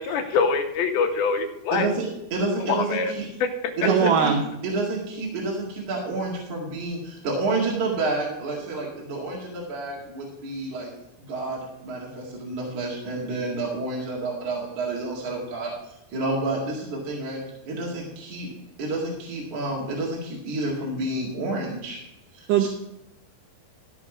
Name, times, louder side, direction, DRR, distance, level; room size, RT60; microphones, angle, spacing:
voice 1, 0.0-1.9 2.7-3.1 3.4-3.5, left 5 dB, 75° left, 5 dB, 2.5 m, -24 dB
voice 2, 1.7-3.3 3.8-4.3 4.6-10.9 11.2-15.7 16.1-17.4 17.6-18.5 18.8-22.0 22.3-22.7, right 2 dB, 50° right, -3 dB, 3.0 m, -29 dB
voice 3, 3.9-4.4 22.5-22.7, right 7 dB, 85° right, 3 dB, 1.8 m, -20 dB
14.0 x 5.1 x 6.0 m, 0.85 s
omnidirectional pair, 4.8 m